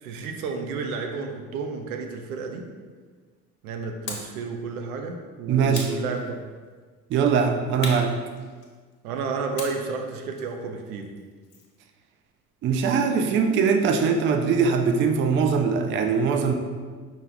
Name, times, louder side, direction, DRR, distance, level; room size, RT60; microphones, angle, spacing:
voice 1, 0.0-2.6 3.6-6.4 9.0-11.1, right 4 dB, 75° right, 4 dB, 0.6 m, -31 dB
sound 1, 4.1-4.4 5.7-6.6 7.8-8.9 9.6-11.8, left 3 dB, 45° left, 0.9 m, -38 dB
voice 2, 5.5-5.9 7.1-8.1 12.6-16.5, right 6 dB, 30° right, 5 dB, 0.4 m, -21 dB
5.3 x 2.4 x 3.8 m, 1.5 s
figure-of-eight pair, 55°, 45 cm